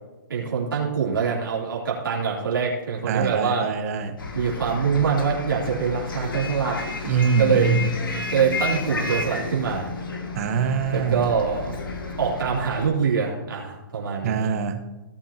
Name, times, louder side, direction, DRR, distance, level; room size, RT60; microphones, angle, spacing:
voice 1, 0.3-3.7 4.3-6.8 7.4-7.8 8.3-9.9 10.9-11.8 12.2-14.5, right 6 dB, 85° right, -5 dB, 3.2 m, -24 dB
voice 2, 3.1-4.2 7.0-7.9 10.3-11.2 14.2-14.8, right 5 dB, 45° right, 8 dB, 1.2 m, -23 dB
Bus, 4.2-12.9, left 3 dB, 90° left, 2.1 m, -32 dB
17.5 x 7.4 x 2.9 m, 1.1 s
hypercardioid pair, 145°, 11 cm